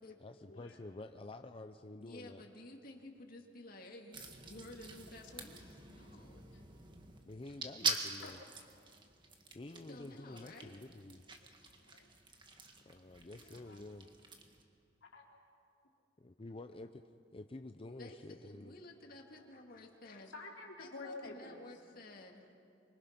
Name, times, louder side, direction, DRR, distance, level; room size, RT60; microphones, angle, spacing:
voice 1, 0.2-2.4 7.3-8.4 9.3-11.2 12.9-14.1 16.2-17.0 17.3-18.7, left 2 dB, 30° left, 7 dB, 0.6 m, -49 dB
voice 2, 2.0-6.5 9.9-10.7 13.3-13.9 18.0-20.3 20.8-22.7, left 2 dB, 50° left, 1 dB, 2.2 m, -53 dB
sound 1, 4.1-14.6, right 4 dB, 25° right, 1.8 m, -45 dB
voice 3, 6.3-6.8 8.2-8.3 9.9-10.0 11.6-12.1 13.7-13.8 15.1-15.2 19.4-19.5 20.3-21.6, left 3 dB, 80° left, -1 dB, 3.6 m, -50 dB
25.5 x 24.5 x 5.9 m, 2.5 s
head